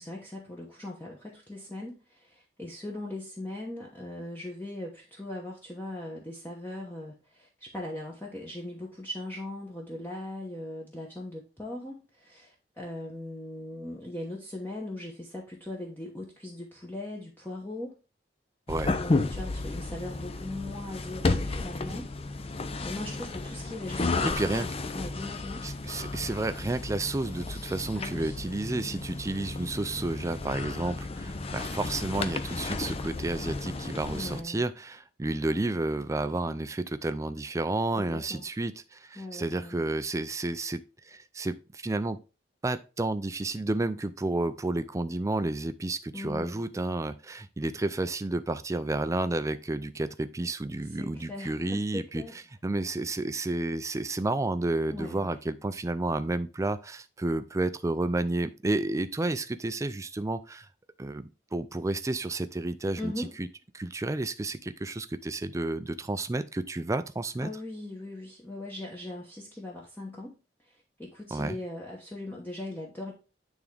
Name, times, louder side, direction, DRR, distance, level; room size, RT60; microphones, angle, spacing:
voice 1, 0.0-17.9 18.9-22.1 22.4-25.6 27.9-28.4 34.1-34.6 37.9-38.4 39.2-39.8 46.1-46.6 51.0-52.3 54.9-55.4 63.0-63.4 67.4-70.4 70.7-73.1, left 1 dB, 10° left, 1.0 m, -39 dB
sound 1, 18.7-34.4, left 3 dB, 35° left, 0.5 m, -33 dB
voice 2, 24.2-24.7 25.6-40.8 41.1-42.2 42.6-52.2 52.6-60.7 61.0-63.5 63.7-67.5 71.3-71.6, right 2 dB, 20° right, 0.4 m, -31 dB
9.1 x 3.6 x 3.3 m
head